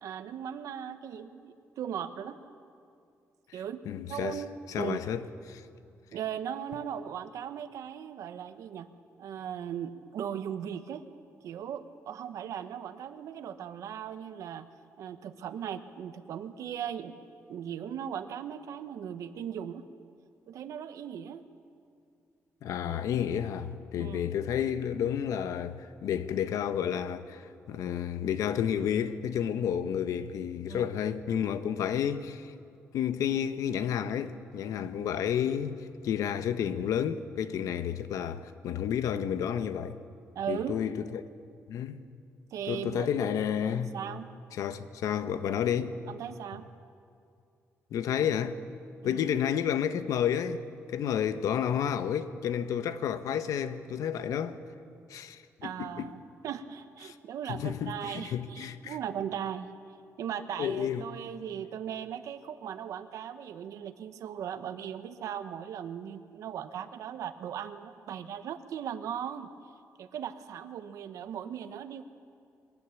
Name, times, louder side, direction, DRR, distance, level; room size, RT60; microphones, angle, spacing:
voice 1, 0.0-2.4 3.5-3.8 4.1-5.0 6.1-8.9 9.2-11.0 11.4-14.7 15.0-17.1 17.5-19.8 20.5-21.4 24.0-24.2 30.7-30.9 40.3-40.7 42.5-43.1 43.9-44.3 46.1-46.7 49.0-49.3 55.6-59.7 60.2-69.5 70.0-72.0, right 9 dB, 80° right, 1.0 m, -38 dB
voice 2, 3.9-4.4 4.7-5.6 22.6-32.5 32.9-40.0 40.5-41.2 41.7-42.0 42.7-43.9 44.6-46.0 47.9-48.6 49.0-50.6 50.9-54.6 55.1-56.1 57.0-57.1 57.5-59.0 60.6-61.1, left 9 dB, 85° left, 0.9 m, -31 dB
21.5 x 18.0 x 7.2 m
cardioid pair, 145°, 6 cm